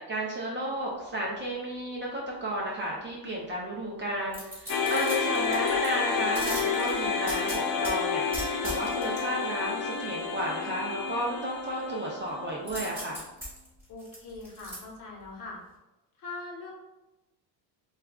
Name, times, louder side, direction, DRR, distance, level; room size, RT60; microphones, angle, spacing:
voice 1, 0.1-13.3, right 1 dB, 25° right, -3 dB, 0.4 m, -33 dB
sound 1, 4.3-5.9 6.3-7.9 8.3-9.2 12.7-14.8 15.2-15.3, equal, 5° right, 1.3 m, -38 dB
sound 2, 4.7-13.0, left 6 dB, 75° left, 0.8 m, -30 dB
voice 2, 13.9-15.6 16.2-16.7, left 3 dB, 45° left, -1 dB, 0.9 m, -42 dB
4.5 x 2.4 x 2.2 m, 0.99 s
cardioid pair, 150°, 46 cm